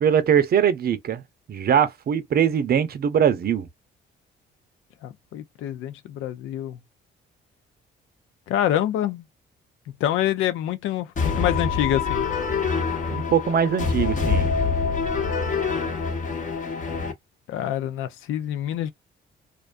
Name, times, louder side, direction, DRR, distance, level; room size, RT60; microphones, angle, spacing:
voice 1, 0.0-1.2 1.5-3.7 13.1-14.5, right 8 dB, 50° right, 0.6 m, -21 dB
voice 2, 5.0-6.8 8.5-9.2 10.0-12.3 17.5-18.9, left 11 dB, 85° left, 0.5 m, -26 dB
sound 1, 11.2-17.1, left 5 dB, 40° left, 0.8 m, -25 dB
2.4 x 2.2 x 2.4 m
cardioid pair, 90°, 20 cm